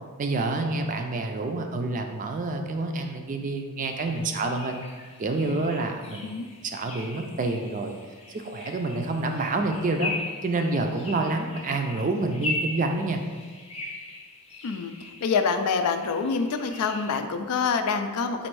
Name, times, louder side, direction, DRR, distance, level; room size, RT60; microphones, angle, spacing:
voice 1, 0.2-4.8 5.2-6.3 6.6-7.9 8.3-10.1 10.4-13.2, right 2 dB, 35° right, 5 dB, 0.3 m, -28 dB
sound 1, 3.8-17.2, left 2 dB, 30° left, 0.6 m, -39 dB
voice 2, 14.6-18.5, left 5 dB, 90° left, 7 dB, 0.4 m, -26 dB
4.1 x 2.6 x 4.6 m, 1.5 s
head